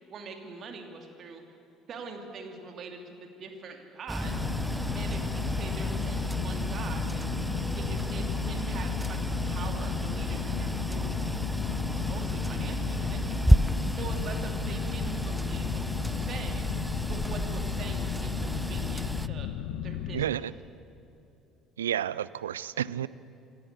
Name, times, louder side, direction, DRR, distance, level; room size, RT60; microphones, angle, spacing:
voice 1, 0.1-1.4 1.9-4.4 4.9-7.4 7.8-9.2 9.4-11.2 11.6-16.7 17.0-19.5 19.8-20.2, right 4 dB, 45° right, 4 dB, 2.7 m, -43 dB
sound 1, 4.1-19.3, equal, 5° right, 0.5 m, -31 dB
sound 2, 4.2-20.2, left 10 dB, 70° left, 0.9 m, -35 dB
voice 2, 20.1-20.5 21.8-23.1, right 10 dB, 80° right, 19 dB, 0.4 m, -31 dB
27.5 x 12.5 x 8.3 m, 2.8 s
figure-of-eight pair, 55°, 0 cm